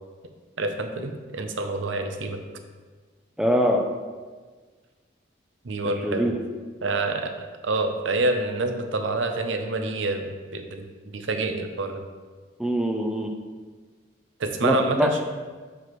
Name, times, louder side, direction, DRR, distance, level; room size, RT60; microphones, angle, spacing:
voice 1, 0.6-2.4 5.6-6.3 6.8-7.3 7.6-12.0 14.4-15.2, right 2 dB, 85° right, 6 dB, 0.7 m, -27 dB
voice 2, 3.4-3.8 6.0-6.4 12.6-13.3 14.6-15.1, equal, 5° right, 2 dB, 0.4 m, -23 dB
7.7 x 6.0 x 3.1 m, 1.4 s
head